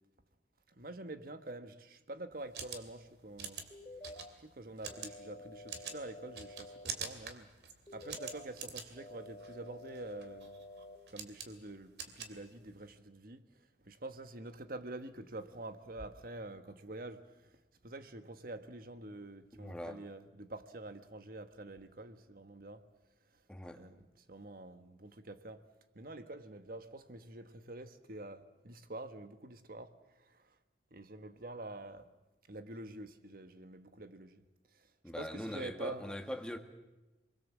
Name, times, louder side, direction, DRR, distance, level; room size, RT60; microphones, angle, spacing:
voice 1, 0.7-3.6 4.4-7.5 7.9-10.6 11.1-13.4 13.8-17.5 17.8-22.8 23.8-25.6 25.9-29.9 30.3-30.5 30.9-32.1 32.5-34.4 34.8-34.9 35.2-36.0, right 2 dB, 55° right, 1.5 m, -47 dB
sound 1, 2.3-13.0, right 6 dB, 70° right, 2.8 m, -47 dB
sound 2, 3.7-4.3 4.9-6.9 7.9-8.5 9.0-11.0, left 1 dB, 20° left, 3.5 m, -50 dB
voice 2, 19.5-20.0 23.5-23.8 35.0-36.6, equal, 5° left, 1.8 m, -42 dB
28.5 x 22.0 x 7.5 m
head